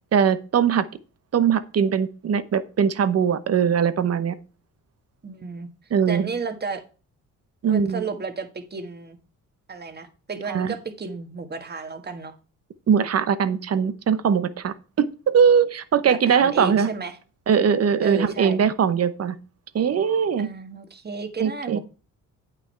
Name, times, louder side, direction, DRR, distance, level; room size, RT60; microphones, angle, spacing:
voice 1, 0.1-0.8 1.3-4.3 5.9-6.3 7.6-8.0 10.5-10.7 12.9-16.9 17.5-19.3 19.7-20.5 21.4-21.8, right 7 dB, 50° right, 13 dB, 0.9 m, -21 dB
voice 2, 5.2-5.7 6.1-6.8 7.7-9.2 9.7-12.3 16.1-17.2 18.0-18.6 20.4-21.8, right 4 dB, 30° right, 7 dB, 1.6 m, -33 dB
8.9 x 5.9 x 4.5 m, 0.35 s
cardioid pair, 100°, 33 cm